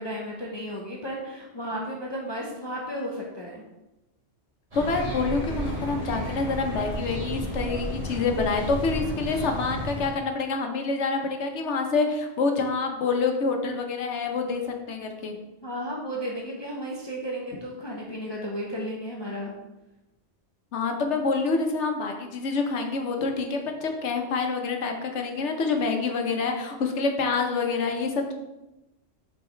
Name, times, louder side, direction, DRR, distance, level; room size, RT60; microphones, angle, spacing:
voice 1, 0.0-3.6 15.6-19.5, equal, 25° left, -3 dB, 0.7 m, -34 dB
voice 2, 4.7-15.3 20.7-28.3, left 4 dB, 80° left, 3 dB, 1.2 m, -27 dB
sound 1, 4.7-10.2, equal, 30° right, 2.1 m, -32 dB
5.5 x 4.2 x 4.4 m, 0.98 s
omnidirectional pair, 1.2 m